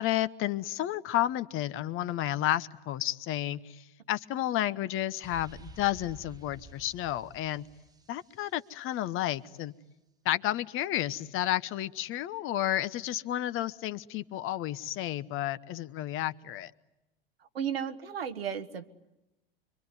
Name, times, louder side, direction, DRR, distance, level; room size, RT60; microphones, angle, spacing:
voice 1, 0.0-7.6 8.1-9.7 10.2-16.7, left 13 dB, 45° left, 14 dB, 1.1 m, -31 dB
sound 1, 5.2-9.0, right 3 dB, 15° right, 1.0 m, -51 dB
voice 2, 17.5-19.1, right 8 dB, 90° right, 8 dB, 1.5 m, -34 dB
25.5 x 24.0 x 9.7 m, 0.94 s
hypercardioid pair, 85°, 29 cm